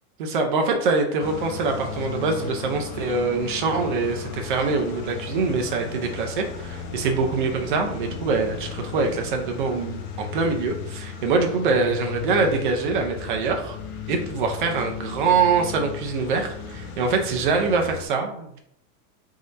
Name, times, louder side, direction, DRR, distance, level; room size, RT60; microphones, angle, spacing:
voice 1, 0.2-13.8 14.1-18.6, right 4 dB, 35° right, 3 dB, 0.4 m, -24 dB
sound 1, 1.2-18.1, left 6 dB, 80° left, 1.0 m, -36 dB
3.6 x 2.6 x 4.2 m, 0.72 s
supercardioid pair, 180°, 44 cm